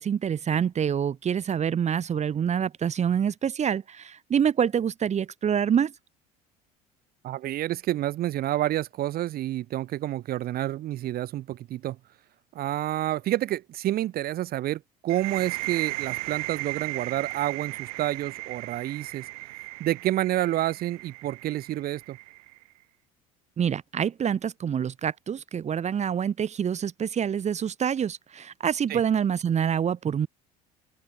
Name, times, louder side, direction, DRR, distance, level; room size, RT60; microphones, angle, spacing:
voice 1, 0.0-5.9 23.6-30.3, right 8 dB, 35° right, 2.1 m, -26 dB
voice 2, 7.2-12.0 12.5-19.3 19.8-22.2 28.9-29.0, right 14 dB, 55° right, 3.4 m, -29 dB
sound 1, 15.1-22.6, right 24 dB, 70° right, 3.7 m, -36 dB
open air
hypercardioid pair, 70°, 19 cm